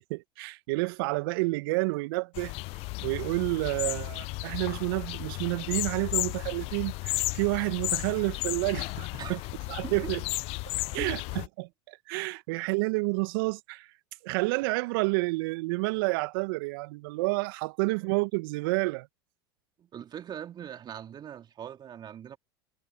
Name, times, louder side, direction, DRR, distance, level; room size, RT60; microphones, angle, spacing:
voice 1, 0.0-2.5 3.0-9.4 9.7-10.2 10.9-13.9 14.2-19.1, right 27 dB, 60° right, 1.1 m, -29 dB
sound 1, 2.3-11.5, left 24 dB, 50° left, 0.5 m, -34 dB
voice 2, 11.0-11.4 19.8-22.4, right 9 dB, 35° right, 3.4 m, -41 dB
hypercardioid pair, 85°, 13 cm